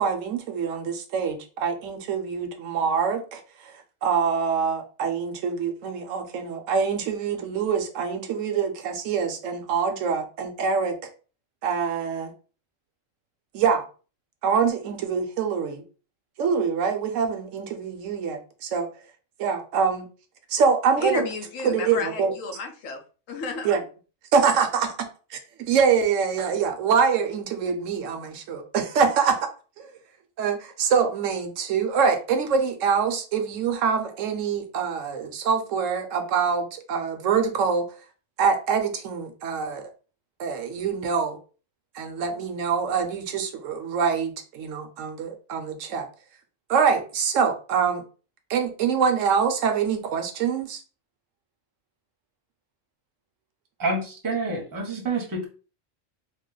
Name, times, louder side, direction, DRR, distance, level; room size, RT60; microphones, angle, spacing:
voice 1, 0.0-11.0 11.6-12.3 13.5-13.9 14.4-15.8 16.4-18.9 19.4-20.1 20.5-21.3 21.6-22.3 23.6-23.8 24.3-25.0 25.3-25.4 25.7-29.4 29.8-29.9 30.4-37.8 38.4-39.9 40.4-41.4 41.9-46.1 46.7-48.0 48.5-50.8, right 6 dB, 80° right, 1.0 m, -25 dB
voice 2, 21.0-23.0 23.3-23.7, left 3 dB, 80° left, 1.1 m, -32 dB
voice 3, 53.8-55.5, right 2 dB, 20° right, 0.7 m, -28 dB
3.0 x 2.1 x 3.7 m
omnidirectional pair, 1.3 m